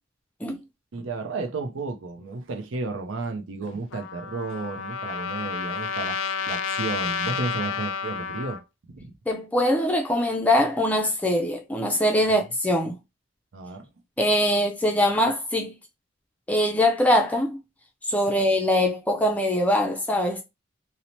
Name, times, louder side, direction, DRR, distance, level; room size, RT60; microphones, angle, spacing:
voice 1, 0.9-8.6 8.9-9.1 12.3-12.4 13.5-13.9 18.3-18.4, right 3 dB, 80° right, 0.5 m, -33 dB
Trumpet, 3.9-8.6, left 6 dB, 80° left, 0.3 m, -30 dB
voice 2, 9.3-12.9 14.2-15.7 16.5-17.6 18.1-20.4, left 1 dB, 10° left, 0.4 m, -22 dB
2.7 x 2.0 x 2.9 m
head